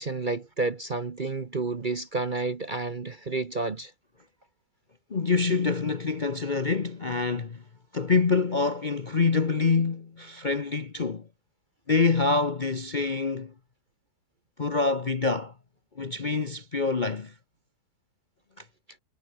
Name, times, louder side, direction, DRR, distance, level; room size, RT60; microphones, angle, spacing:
voice 1, 0.0-3.9, right 3 dB, 35° right, 1.0 m, -30 dB
voice 2, 5.1-7.6 7.9-11.3 11.9-13.5 14.6-15.5 16.0-17.3 18.6-18.7, left 4 dB, 35° left, 0.9 m, -26 dB
omnidirectional pair, 1.9 m